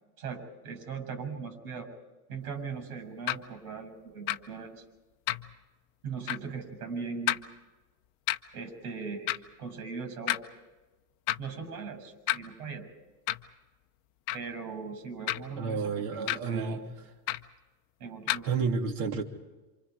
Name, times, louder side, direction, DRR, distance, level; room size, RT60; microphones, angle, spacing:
voice 1, 0.2-1.9 2.3-4.8 6.0-7.4 8.5-10.4 11.4-12.9 14.3-16.8 18.0-18.5, right 5 dB, 90° right, 7 dB, 7.2 m, -39 dB
sound 1, 3.3-3.4 4.3-4.4 5.3-5.6 6.3-6.4 7.3-7.4 8.3-8.4 9.3-9.4 10.3-10.4 11.3-11.5 12.3-12.4 13.3-13.5 14.3-14.5 15.3-15.6 16.3-16.4 17.3-17.5 18.3-18.5, left 17 dB, 40° left, 0.8 m, -30 dB
voice 2, 15.6-16.8 18.5-19.2, right 5 dB, 55° right, 4 dB, 3.0 m, -30 dB
28.5 x 26.5 x 4.9 m, 1.2 s
supercardioid pair, 165°, 44 cm